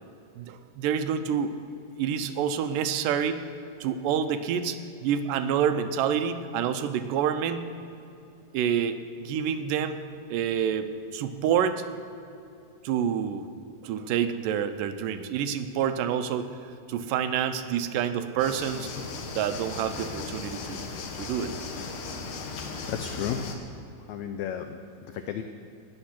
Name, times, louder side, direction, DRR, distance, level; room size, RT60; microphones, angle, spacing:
voice 1, 0.4-1.6 2.0-3.4 3.8-7.7 8.5-10.0 10.3-11.8 12.8-13.5 13.8-16.5 16.9-18.9 19.3-20.8 21.2-21.5, right 8 dB, 80° right, 9 dB, 2.2 m, -28 dB
sound 1, 18.4-23.6, left 4 dB, 70° left, 2.5 m, -37 dB
voice 2, 22.6-23.6 24.0-25.4, left 9 dB, 90° left, 7 dB, 1.6 m, -34 dB
19.0 x 6.6 x 5.9 m, 2.7 s
omnidirectional pair, 3.9 m